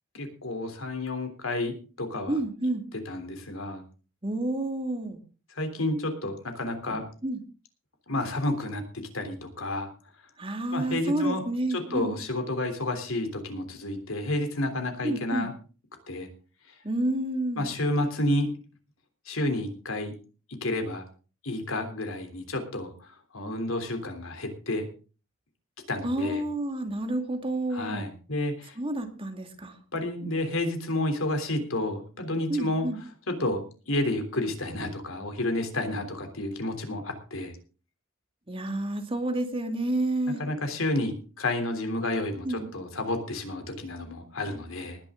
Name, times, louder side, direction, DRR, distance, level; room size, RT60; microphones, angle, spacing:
voice 1, 0.1-2.4 3.0-3.8 5.6-7.0 8.1-8.8 9.1-9.9 10.7-11.4 11.7-15.5 16.1-16.3 17.6-18.5 19.3-20.1 20.6-21.0 21.4-22.9 23.3-24.9 25.9-26.4 27.7-28.7 29.9-32.9 33.3-33.6 33.9-37.5 40.4-45.0, left 1 dB, 75° left, 6 dB, 3.4 m, -30 dB
voice 2, 2.3-2.8 4.2-5.2 7.2-7.4 10.4-12.1 15.0-15.5 16.8-17.6 26.0-28.1 28.8-29.7 32.5-33.0 38.5-40.4 42.4-42.7, right 1 dB, 25° right, 5 dB, 2.2 m, -29 dB
19.5 x 10.5 x 3.8 m, 0.36 s
head